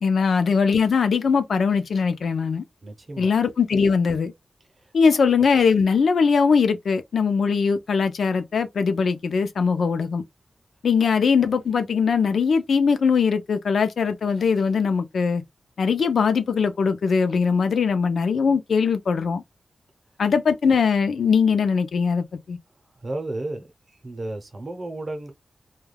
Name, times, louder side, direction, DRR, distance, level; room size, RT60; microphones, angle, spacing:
voice 1, 0.0-2.6 3.2-4.3 4.9-10.2 10.8-15.4 15.8-19.4 20.2-22.6, left 5 dB, 80° left, 0.5 m, -21 dB
voice 2, 2.8-3.3 11.0-11.1 23.0-23.7 24.0-25.3, right 2 dB, 35° right, 0.7 m, -33 dB
2.3 x 2.3 x 3.3 m
wide cardioid pair, 165°, 0 cm